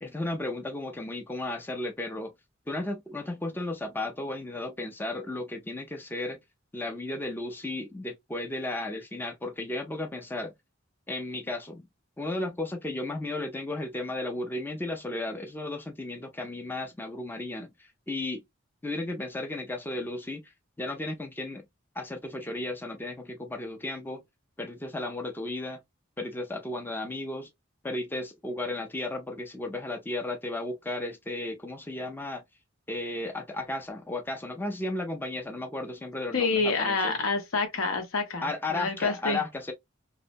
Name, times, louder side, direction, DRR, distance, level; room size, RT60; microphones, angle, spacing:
voice 1, 0.0-2.3 2.7-6.4 6.7-10.5 11.1-11.9 12.2-17.7 18.1-18.4 18.8-20.4 20.8-21.6 22.0-24.2 24.6-25.8 26.2-27.5 27.8-32.4 32.9-37.2 38.4-39.7, left 2 dB, 10° left, 0.4 m, -34 dB
voice 2, 36.3-39.4, left 3 dB, 85° left, 0.9 m, -28 dB
2.8 x 2.1 x 2.5 m
head